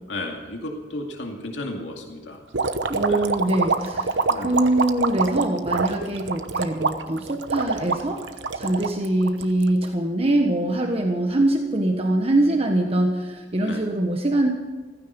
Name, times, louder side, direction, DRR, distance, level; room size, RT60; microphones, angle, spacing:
voice 1, 0.1-2.4 3.1-3.2 4.3-4.6 13.6-13.8, left 1 dB, 85° left, 1 dB, 2.3 m, -33 dB
sound 1, 2.5-9.9, right 4 dB, 80° right, 1.0 m, -25 dB
voice 2, 2.9-8.3 8.5-14.5, right 1 dB, 35° right, 2 dB, 1.3 m, -23 dB
15.5 x 15.5 x 5.4 m, 1.3 s
head